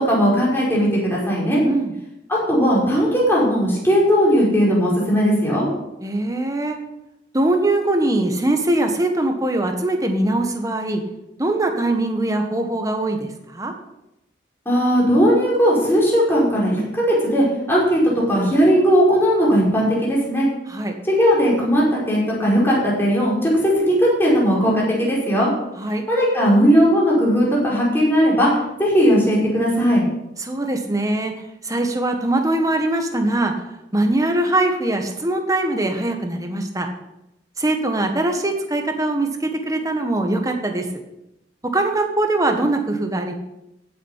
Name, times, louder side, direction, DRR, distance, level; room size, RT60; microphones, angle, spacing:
voice 1, 0.0-1.6 2.3-5.7 14.7-18.0 18.3-20.5 21.1-25.5 26.1-28.5 28.8-30.0, equal, 15° left, -5 dB, 5.2 m, -17 dB
voice 2, 6.0-6.8 7.3-11.0 11.4-13.7 20.7-20.9 25.8-26.0 30.4-31.3 31.6-33.5 33.9-36.9 37.6-40.9 41.7-43.3, right 2 dB, 20° right, 4 dB, 1.6 m, -22 dB
16.0 x 7.8 x 5.8 m, 0.89 s
head